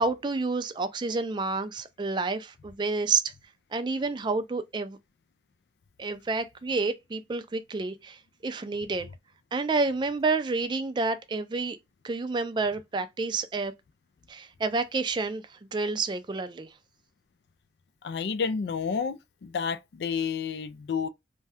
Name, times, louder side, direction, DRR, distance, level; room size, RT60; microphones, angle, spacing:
voice 1, 0.0-3.3 3.7-5.0 6.0-8.2 8.4-9.1 9.5-11.8 12.0-13.7 14.3-15.4 15.7-16.7, right 3 dB, 25° right, 0.3 m, -29 dB
voice 2, 18.0-21.1, left 6 dB, 70° left, 0.4 m, -30 dB
2.6 x 2.2 x 3.3 m
head